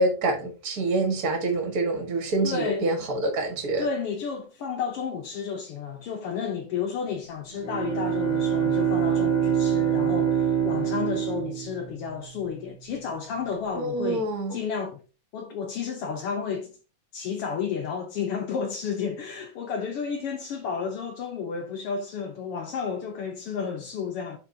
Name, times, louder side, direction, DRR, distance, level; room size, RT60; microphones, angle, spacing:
voice 1, 0.0-3.9 13.7-14.6, right 2 dB, 40° right, 1.4 m, -26 dB
voice 2, 2.4-3.1 3.8-15.0 15.3-16.8 17.1-24.4, left 6 dB, 80° left, 1.3 m, -32 dB
Bowed string instrument, 7.5-12.2, right 8 dB, 15° left, 2.3 m, -25 dB
10.0 x 4.1 x 2.7 m
omnidirectional pair, 3.7 m